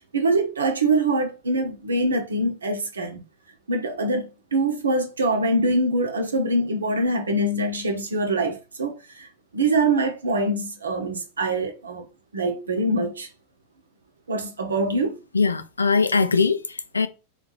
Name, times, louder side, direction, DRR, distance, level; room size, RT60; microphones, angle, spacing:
voice 1, 0.1-3.2 3.7-12.1 12.3-13.3 14.3-15.2, right 2 dB, 70° right, 0.9 m, -24 dB
voice 2, 15.3-17.1, left 4 dB, 75° left, 0.5 m, -21 dB
3.4 x 3.2 x 4.1 m
figure-of-eight pair, 90°, 0 cm